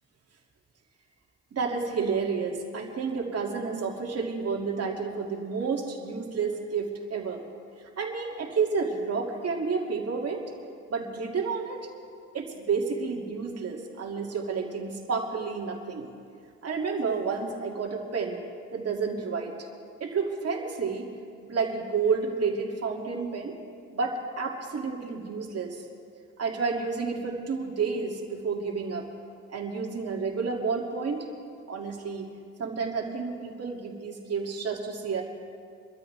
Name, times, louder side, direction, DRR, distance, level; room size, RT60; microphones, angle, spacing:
voice 1, 1.5-7.4 8.0-10.4 10.9-11.8 12.3-16.1 16.6-18.4 18.7-19.5 20.0-21.1 21.4-23.6 23.9-25.9 26.4-29.1 29.5-31.3 31.7-32.3 32.6-35.2, right 5 dB, 55° right, 1 dB, 2.4 m, -30 dB
25.5 x 13.0 x 3.4 m, 2.2 s
cardioid pair, 90°, 30 cm